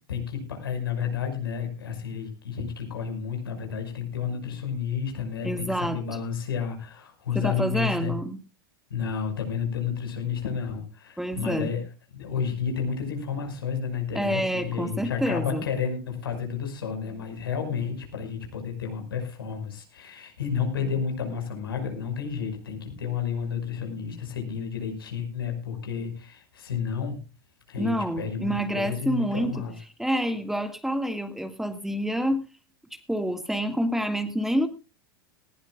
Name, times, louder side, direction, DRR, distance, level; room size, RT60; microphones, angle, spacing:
voice 1, 0.1-8.1 8.9-11.8 12.1-27.2 27.7-29.7, left 7 dB, 80° left, 4 dB, 5.6 m, -31 dB
voice 2, 5.4-6.0 7.3-8.4 11.2-11.7 14.2-15.6 27.8-29.6 30.0-32.4 33.1-34.7, equal, 5° right, 8 dB, 1.9 m, -27 dB
19.5 x 16.5 x 2.4 m, 0.31 s
hypercardioid pair, 95°, 12 cm